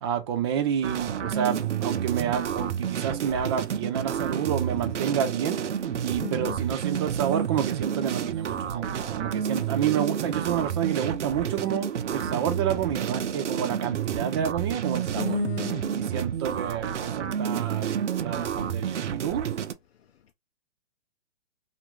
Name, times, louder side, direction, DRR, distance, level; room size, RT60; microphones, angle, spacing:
voice 1, 0.0-5.6 6.0-15.4 15.9-19.5, right 9 dB, 25° right, 0.4 m, -29 dB
sound 1, 0.8-19.7, right 8 dB, 90° right, 0.6 m, -30 dB
voice 2, 6.2-6.6 15.2-15.9, left 9 dB, 65° left, 0.6 m, -33 dB
2.8 x 2.5 x 3.0 m
hypercardioid pair, 140°, 34 cm